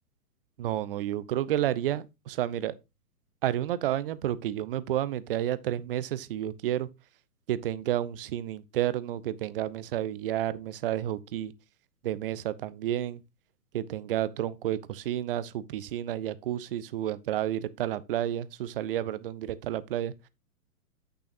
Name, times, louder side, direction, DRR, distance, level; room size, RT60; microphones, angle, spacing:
voice 1, 0.6-2.7 3.4-6.9 7.5-11.5 12.0-13.2 13.7-20.1, right 12 dB, 40° right, 0.6 m, -31 dB
8.4 x 6.3 x 2.6 m
figure-of-eight pair, 115°, 44 cm